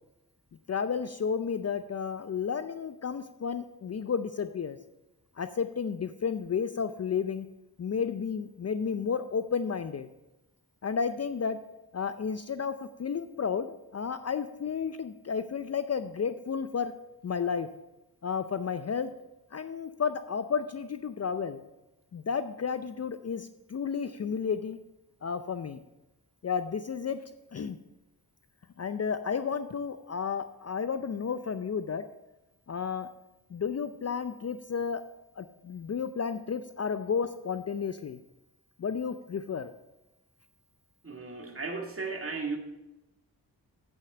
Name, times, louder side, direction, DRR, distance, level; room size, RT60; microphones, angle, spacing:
voice 1, 0.7-4.8 5.4-7.5 7.8-10.1 10.8-11.6 11.9-16.9 17.2-17.7 18.2-19.1 19.5-21.6 22.1-24.8 25.2-25.8 26.4-27.2 27.5-27.8 28.8-32.0 32.7-33.1 33.5-35.0 35.4-38.2 38.8-39.7, left 6 dB, 35° left, 11 dB, 0.5 m, -32 dB
voice 2, 41.0-42.6, right 4 dB, 30° right, 3 dB, 1.9 m, -35 dB
8.4 x 6.5 x 6.1 m, 0.97 s
supercardioid pair, 45°, 42 cm